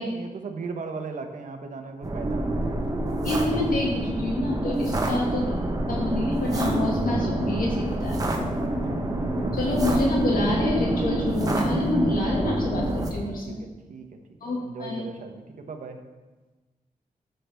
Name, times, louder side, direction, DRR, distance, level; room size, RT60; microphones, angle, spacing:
voice 1, 0.0-2.8 4.8-5.0 8.5-9.6 13.0-14.1 14.4-16.0, right 4 dB, 65° right, 4 dB, 1.0 m, -38 dB
sound 1, 2.0-13.1, right 1 dB, 25° right, 0.9 m, -26 dB
voice 2, 3.2-5.5 5.9-8.4 9.5-13.6 14.4-15.0, left 2 dB, 75° left, -3 dB, 2.0 m, -27 dB
12.0 x 6.8 x 3.5 m, 1.2 s
wide cardioid pair, 155°, 15 cm